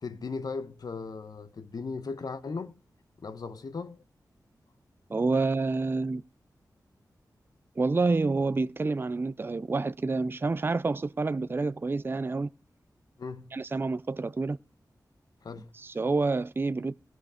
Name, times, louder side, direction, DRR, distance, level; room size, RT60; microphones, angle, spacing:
voice 1, 0.0-2.8 3.2-4.0 13.2-13.5 15.4-15.7, left 4 dB, 65° left, 1.3 m, -37 dB
voice 2, 5.1-6.2 7.8-12.5 13.5-14.6 15.8-17.0, right 3 dB, 30° right, 0.5 m, -28 dB
17.5 x 6.4 x 5.0 m
wide cardioid pair, 110°, 7 cm